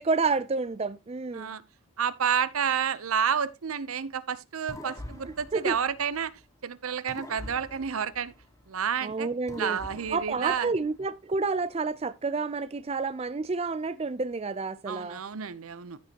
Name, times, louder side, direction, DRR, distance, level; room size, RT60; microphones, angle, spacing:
voice 1, 0.0-1.5 5.5-5.8 9.0-9.8 10.1-15.2, right 4 dB, 30° right, 0.4 m, -29 dB
voice 2, 2.0-6.3 6.6-8.3 8.7-9.3 9.6-10.7 14.9-16.0, right 7 dB, 80° right, 0.7 m, -30 dB
sound 1, 4.7-6.6 7.1-9.0 9.5-11.2, left 1 dB, 15° left, 1.1 m, -45 dB
15.5 x 5.4 x 2.9 m
head